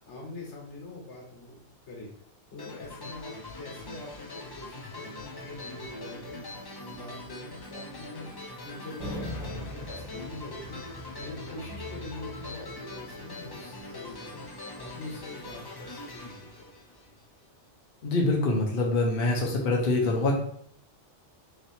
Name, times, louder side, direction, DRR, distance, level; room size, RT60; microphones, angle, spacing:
voice 1, 0.0-2.1 2.5-8.3 8.6-16.7, left 2 dB, 85° left, -2 dB, 1.4 m, -44 dB
sound 1, 2.6-17.4, left 2 dB, 35° left, 0.4 m, -42 dB
sound 2, 9.0-13.5, left 1 dB, 35° right, 1.6 m, -41 dB
voice 2, 18.0-20.3, left 2 dB, 55° left, -1 dB, 0.9 m, -25 dB
3.2 x 2.7 x 4.2 m, 0.64 s
omnidirectional pair, 1.2 m